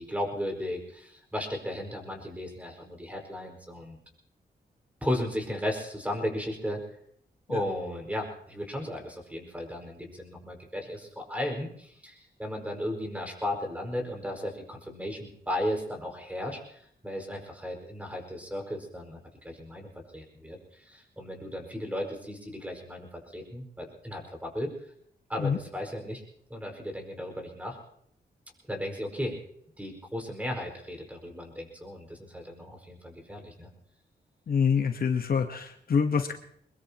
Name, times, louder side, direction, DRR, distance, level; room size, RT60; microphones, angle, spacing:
voice 1, 0.0-4.0 5.0-6.8 7.5-24.7 25.3-26.2 26.5-27.8 28.7-29.4 29.8-33.7, left 1 dB, 10° right, 2 dB, 5.2 m, -35 dB
voice 2, 34.5-36.3, left 6 dB, 60° left, 6 dB, 1.2 m, -26 dB
23.0 x 21.0 x 2.9 m, 0.68 s
cardioid pair, 95°, 17 cm